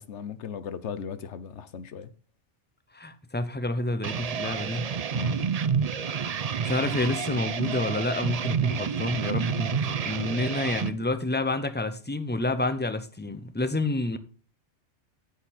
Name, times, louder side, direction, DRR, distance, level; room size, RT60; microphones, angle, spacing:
voice 1, 0.0-2.1 5.1-5.4, left 6 dB, 75° left, 1.2 m, -37 dB
voice 2, 2.9-4.9 6.6-14.2, left 2 dB, 10° left, 0.6 m, -29 dB
sound 1, 4.0-10.9, right 7 dB, 45° right, 0.5 m, -29 dB
10.0 x 8.1 x 4.2 m
omnidirectional pair, 1.2 m